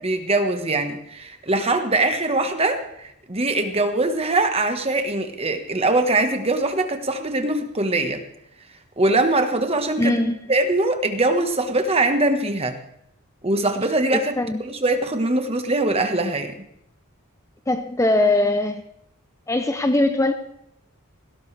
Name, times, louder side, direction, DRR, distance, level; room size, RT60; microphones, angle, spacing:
voice 1, 0.0-8.2 9.0-10.1 10.5-12.8 13.4-16.5, right 2 dB, 25° right, 6 dB, 1.4 m, -22 dB
voice 2, 10.0-10.5 14.4-14.6 17.7-18.8 19.5-20.3, left 2 dB, 15° left, 7 dB, 0.6 m, -21 dB
18.5 x 17.0 x 3.4 m, 0.77 s
head